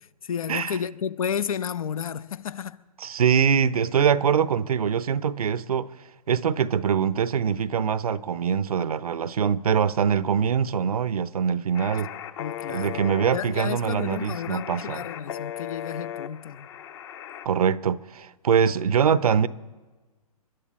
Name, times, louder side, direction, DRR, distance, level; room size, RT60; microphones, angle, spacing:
voice 1, 0.0-2.8 12.4-16.7, left 8 dB, 60° left, 0.7 m, -32 dB
voice 2, 3.0-5.9 6.3-12.1 12.7-15.0 17.4-19.5, right 7 dB, 70° right, 0.7 m, -23 dB
sound 1, 11.7-17.5, left 10 dB, 45° left, 1.1 m, -37 dB
29.5 x 11.0 x 4.3 m
hypercardioid pair, 130°, 20 cm